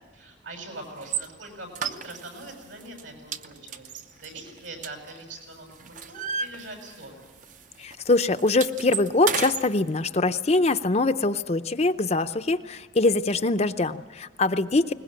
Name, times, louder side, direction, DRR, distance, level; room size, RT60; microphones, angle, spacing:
voice 1, 0.1-7.3, right 2 dB, 80° right, 4 dB, 7.3 m, -42 dB
sound 1, 1.0-1.3 1.7-2.5 2.8-3.0 3.3-5.4 5.7-7.2 7.4-7.6 7.9-9.7, right 6 dB, 40° right, 0.7 m, -32 dB
voice 2, 7.8-14.9, left 2 dB, 35° left, 9 dB, 0.6 m, -23 dB
22.0 x 20.5 x 8.9 m, 1.5 s
head